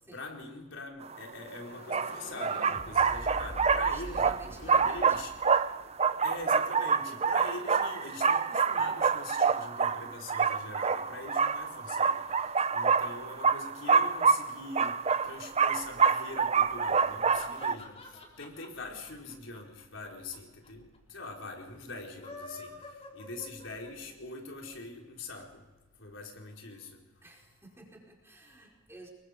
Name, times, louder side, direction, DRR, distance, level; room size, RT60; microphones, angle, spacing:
voice 1, 0.1-5.3 6.2-25.6 26.0-27.0, left 3 dB, 75° left, 0 dB, 4.2 m, -43 dB
sound 1, 1.1-1.2 1.9-17.8, right 5 dB, 35° right, 0.6 m, -27 dB
sound 2, 1.4-6.2, left 1 dB, 50° left, 3.1 m, -46 dB
voice 2, 3.9-5.2 27.2-29.1, right 2 dB, 15° right, -1 dB, 4.8 m, -50 dB
sound 3, 17.0-20.4 20.6-20.7 20.9-21.0 22.0-24.2, left 2 dB, 35° left, 4.1 m, -48 dB
27.0 x 22.5 x 5.0 m, 1.1 s
head